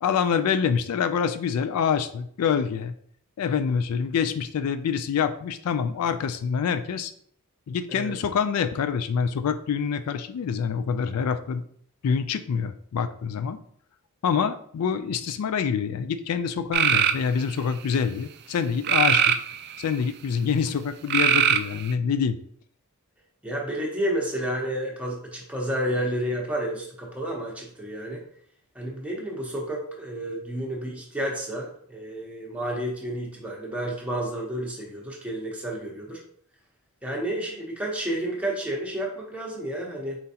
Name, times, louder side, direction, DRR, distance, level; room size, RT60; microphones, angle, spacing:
voice 1, 0.0-2.9 3.4-7.1 7.7-11.6 12.0-13.6 14.2-19.4 19.8-22.4, left 6 dB, 80° left, 11 dB, 0.3 m, -26 dB
sound 1, 16.7-17.2 18.8-19.9 21.1-21.9, right 8 dB, 45° right, 0.3 m, -21 dB
voice 2, 23.4-28.2 28.7-36.2 37.0-40.2, right 1 dB, 5° right, -3 dB, 1.0 m, -30 dB
4.4 x 3.8 x 2.8 m, 0.63 s
head